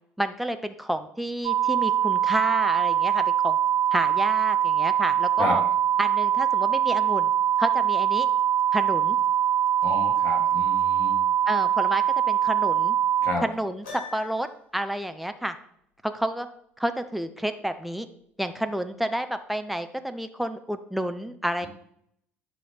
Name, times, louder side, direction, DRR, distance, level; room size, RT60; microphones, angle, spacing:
voice 1, 0.2-3.6 3.9-5.6 6.0-7.3 7.6-8.3 8.7-9.2 11.5-13.0 13.4-14.5 14.7-15.5 16.0-16.5 16.8-18.1 18.4-21.7, right 1 dB, ahead, 8 dB, 0.8 m, -30 dB
sound 1, 1.4-13.3, right 10 dB, 45° right, 0.6 m, -23 dB
voice 2, 9.8-11.1 13.2-13.4, left 2 dB, 40° left, -2 dB, 3.3 m, -30 dB
Piano, 13.8-14.7, left 4 dB, 70° left, 3.2 m, -41 dB
11.5 x 5.2 x 4.1 m, 0.71 s
figure-of-eight pair, 60°, 6 cm